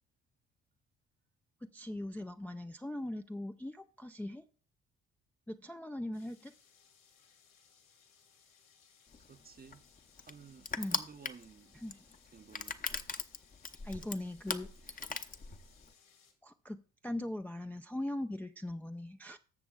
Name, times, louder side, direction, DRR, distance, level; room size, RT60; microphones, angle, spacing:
voice 1, 1.6-4.4 5.5-6.5 10.8-11.0 11.7-12.0 13.8-15.1 16.4-19.4, left 1 dB, 5° left, 0.4 m, -40 dB
sound 1, 6.1-16.3, left 7 dB, 70° left, 3.1 m, -65 dB
Crushing, 9.1-15.9, left 4 dB, 25° left, 0.8 m, -40 dB
voice 2, 9.3-9.9 10.2-11.8 12.3-12.8, right 6 dB, 25° right, 0.7 m, -54 dB
18.0 x 7.0 x 2.4 m
hypercardioid pair, 50°, 36 cm